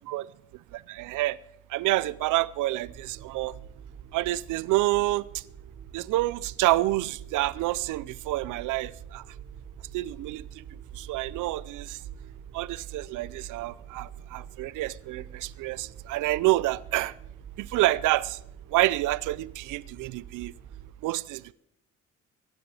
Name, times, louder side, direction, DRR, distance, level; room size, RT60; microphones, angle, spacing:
voice 1, 0.7-1.4 1.7-3.6 4.1-5.4 5.9-9.2 9.9-10.6 10.9-12.0 12.5-17.1 17.6-18.4 18.7-20.5 21.0-21.5, right 17 dB, 90° right, 0.6 m, -28 dB
sound 1, 2.8-20.9, right 8 dB, 55° right, 1.3 m, -46 dB
23.5 x 9.8 x 4.9 m
cardioid pair, 90°, 30 cm